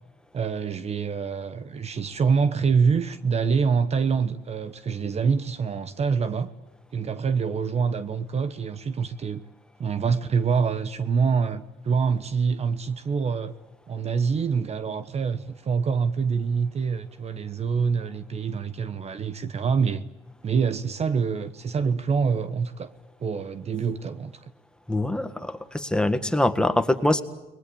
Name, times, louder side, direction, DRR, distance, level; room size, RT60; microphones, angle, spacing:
voice 1, 0.3-6.5 6.9-9.4 9.8-13.6 13.9-20.0 20.4-22.9 23.2-24.5, right 5 dB, 40° right, 1.2 m, -25 dB
voice 2, 24.9-27.2, left 1 dB, 5° left, 1.8 m, -24 dB
30.0 x 21.5 x 8.7 m
cardioid pair, 110°, 17 cm